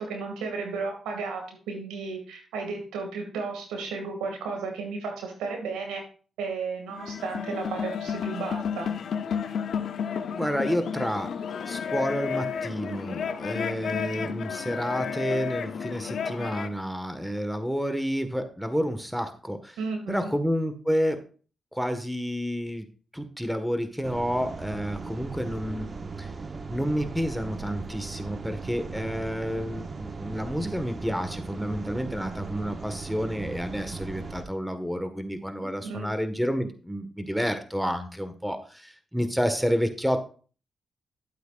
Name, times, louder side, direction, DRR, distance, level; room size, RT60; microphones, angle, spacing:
voice 1, 0.0-6.0 6.4-8.9 19.8-20.3 35.6-36.1, right 4 dB, 85° right, 3 dB, 2.2 m, -34 dB
sound 1, 6.9-16.7, left 7 dB, 70° left, 0.6 m, -32 dB
voice 2, 10.3-11.3 11.7-19.8 20.1-21.2 21.7-22.8 23.1-26.3 26.7-40.2, equal, 5° right, 9 dB, 1.5 m, -30 dB
sound 2, 24.0-34.4, right 4 dB, 45° right, 1.0 m, -38 dB
11.5 x 8.1 x 2.5 m, 0.39 s
supercardioid pair, 45°, 0 cm